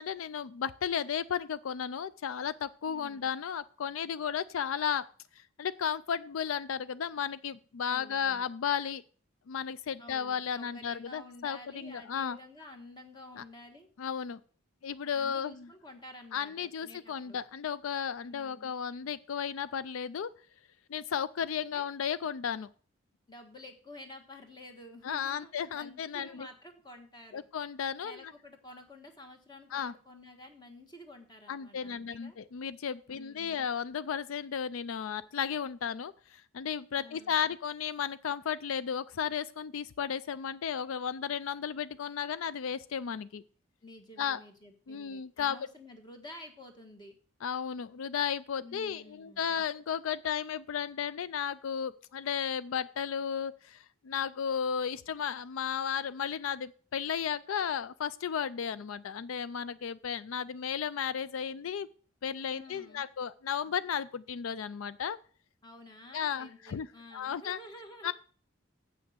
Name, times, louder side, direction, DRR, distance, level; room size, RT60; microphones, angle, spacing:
voice 1, 0.0-5.1 5.4-9.0 9.5-12.4 13.4-13.5 14.0-14.4 14.8-15.7 16.3-20.3 20.9-22.7 25.0-26.5 27.3-28.3 29.7-29.9 31.5-43.4 44.2-44.4 44.9-45.6 47.4-61.9 62.2-65.2 66.1-67.6 68.0-68.1, left 7 dB, 85° left, 17 dB, 0.4 m, -34 dB
voice 2, 2.8-3.3 7.9-8.5 10.0-13.9 15.1-17.4 18.2-18.7 21.7-21.9 23.3-27.4 28.0-32.4 33.1-33.6 37.0-37.5 43.8-47.1 48.6-49.6 62.5-63.1 65.6-68.1, left 1 dB, 20° left, 4 dB, 1.6 m, -51 dB
8.2 x 6.0 x 7.9 m, 0.43 s
head